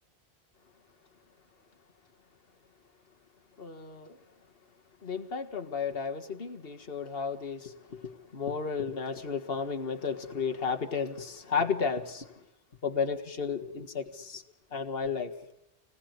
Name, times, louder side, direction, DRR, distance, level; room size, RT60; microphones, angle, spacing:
voice 1, 3.6-4.2 5.0-12.3 12.8-14.4 14.7-15.3, left 5 dB, 60° left, 2.0 m, -33 dB
28.0 x 20.5 x 9.6 m
omnidirectional pair, 1.1 m